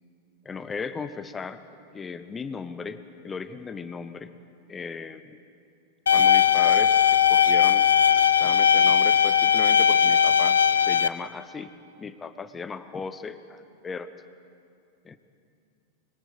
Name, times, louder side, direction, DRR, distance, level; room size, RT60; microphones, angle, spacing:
voice 1, 0.4-1.6 1.9-4.3 4.7-5.4 6.1-7.9 8.4-11.7 12.0-14.1 15.0-15.2, left 5 dB, 20° left, 12 dB, 1.0 m, -36 dB
sound 1, 6.1-11.1, left 8 dB, 70° left, 0.6 m, -19 dB
23.5 x 22.0 x 6.8 m, 2.5 s
figure-of-eight pair, 90°, 0 cm